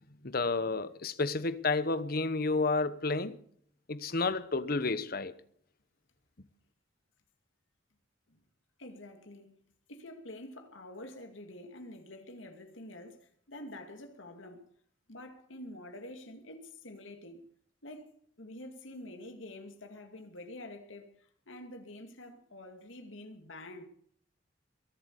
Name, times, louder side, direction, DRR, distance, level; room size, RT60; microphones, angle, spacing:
voice 1, 0.2-3.4 3.9-5.3, left 3 dB, 50° left, 1.0 m, -31 dB
voice 2, 8.8-9.6 9.9-14.7 15.1-17.5 17.8-18.1 18.4-23.8, left 1 dB, 90° left, 2.3 m, -47 dB
22.0 x 8.0 x 8.2 m
head